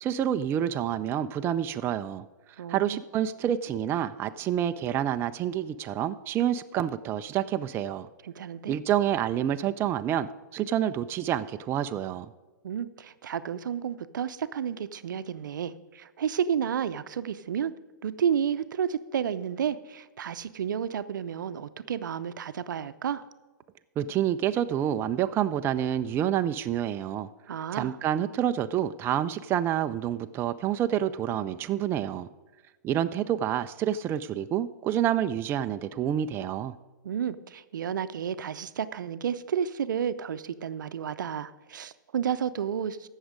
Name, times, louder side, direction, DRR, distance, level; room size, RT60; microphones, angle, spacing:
voice 1, 0.0-2.2 2.7-8.1 8.7-12.3 24.0-27.3 27.7-32.3 32.8-36.7, right 10 dB, 20° right, 10 dB, 0.4 m, -28 dB
voice 2, 2.6-3.0 8.2-8.8 12.6-17.7 18.0-23.2 27.5-28.0 37.0-43.1, right 8 dB, 75° right, 13 dB, 0.6 m, -31 dB
16.0 x 6.4 x 5.0 m, 1.2 s
hypercardioid pair, 125°, 10 cm